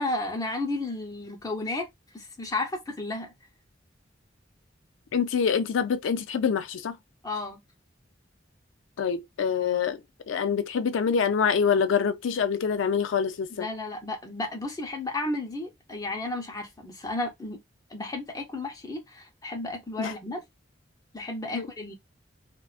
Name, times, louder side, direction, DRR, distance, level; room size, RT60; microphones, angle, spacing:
voice 1, 0.0-1.9 2.1-3.3 7.2-7.6 13.5-17.6 17.9-20.4 21.1-21.9, left 2 dB, 20° left, 0.6 m, -33 dB
voice 2, 5.1-7.0 9.0-10.0 10.3-13.7 20.0-20.1 21.5-21.7, left 6 dB, 85° left, 0.4 m, -25 dB
2.3 x 2.2 x 2.4 m
head